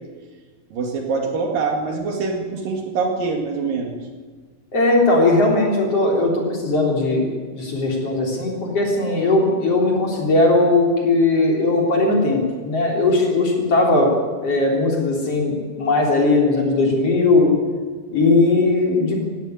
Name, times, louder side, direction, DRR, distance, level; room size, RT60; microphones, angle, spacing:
voice 1, 0.7-4.0, right 4 dB, 65° right, 2 dB, 3.9 m, -24 dB
voice 2, 4.7-14.1 14.4-17.5 18.1-19.2, left 2 dB, 40° left, -1 dB, 4.5 m, -18 dB
17.0 x 16.5 x 9.6 m, 1.5 s
omnidirectional pair, 4.3 m